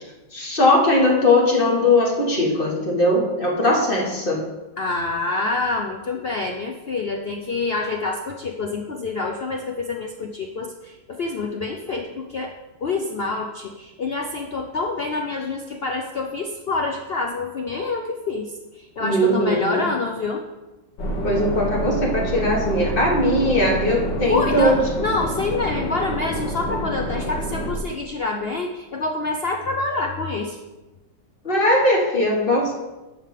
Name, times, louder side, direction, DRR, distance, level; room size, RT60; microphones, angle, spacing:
voice 1, 0.3-4.4 19.0-19.8 21.2-24.8 31.4-32.7, left 1 dB, 30° left, -1 dB, 1.7 m, -19 dB
voice 2, 4.8-12.5 12.8-20.4 24.3-30.6, left 3 dB, 60° left, 1 dB, 0.6 m, -27 dB
sound 1, 21.0-27.8, right 1 dB, 90° left, 2.1 m, -27 dB
10.5 x 3.6 x 7.4 m, 1.1 s
omnidirectional pair, 1.9 m